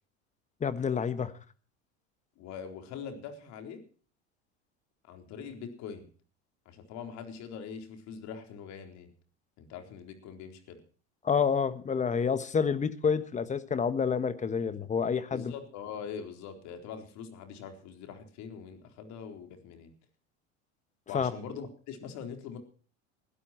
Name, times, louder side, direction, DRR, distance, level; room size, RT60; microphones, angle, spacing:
voice 1, 0.6-1.3 11.2-15.5 21.1-21.3, left 6 dB, 20° left, 14 dB, 1.4 m, -28 dB
voice 2, 2.4-3.8 5.1-6.0 6.7-9.1 9.6-10.8 15.3-19.9 21.1-22.6, left 7 dB, 55° left, 6 dB, 4.1 m, -43 dB
20.5 x 12.5 x 4.5 m, 0.41 s
supercardioid pair, 115°, 33 cm